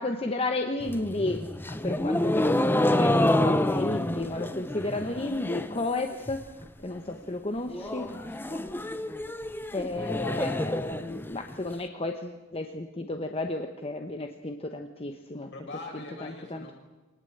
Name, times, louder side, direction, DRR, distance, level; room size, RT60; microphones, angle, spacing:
voice 1, 0.0-1.4 1.7-6.4 6.8-8.0 9.7-15.5 16.2-16.7, left 2 dB, 30° left, 5 dB, 1.1 m, -32 dB
sound 1, 0.8-5.8 6.1-6.6 7.0-7.1 7.3-7.4 7.7-11.7, left 1 dB, 10° left, 0.8 m, -28 dB
voice 2, 7.8-8.6 15.5-16.7, left 2 dB, 55° left, 0 dB, 7.3 m, -43 dB
24.5 x 19.5 x 8.0 m, 1.2 s
head